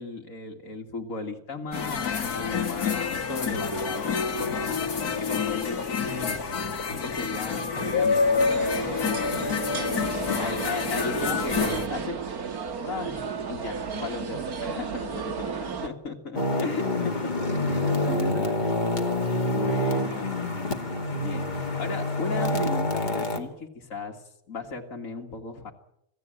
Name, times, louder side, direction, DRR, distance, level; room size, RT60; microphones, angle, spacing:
voice 1, 0.0-6.4 7.0-8.2 10.0-12.2 12.8-17.3 17.6-18.5 19.5-25.7, left 4 dB, 60° left, 0 dB, 2.4 m, -36 dB
sound 1, 1.7-11.9, left 5 dB, 90° left, 2.3 m, -27 dB
voice 2, 6.3-8.6 9.0-10.8 14.3-15.3 16.4-20.5, equal, 25° right, -3 dB, 7.7 m, -44 dB
sound 2, 8.1-15.9, right 5 dB, 75° right, 2.1 m, -33 dB
sound 3, 16.3-23.4, left 1 dB, 30° left, 2.4 m, -27 dB
27.0 x 17.0 x 8.9 m, 0.80 s
omnidirectional pair, 1.6 m